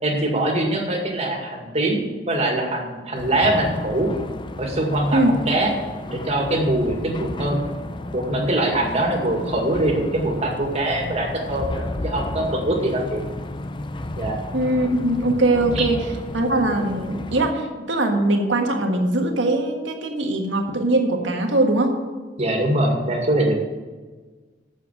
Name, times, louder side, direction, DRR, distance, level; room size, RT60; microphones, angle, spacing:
voice 1, 0.0-4.1 4.6-5.7 6.1-7.7 8.1-13.2 14.2-14.4 15.8-15.9 22.4-23.5, right 1 dB, 35° right, 1 dB, 2.1 m, -23 dB
sound 1, 3.1-17.5, left 1 dB, 25° left, 0.5 m, -32 dB
voice 2, 14.5-16.1 16.3-22.0, right 2 dB, 85° right, 3 dB, 1.6 m, -21 dB
8.6 x 7.1 x 7.3 m, 1.4 s
head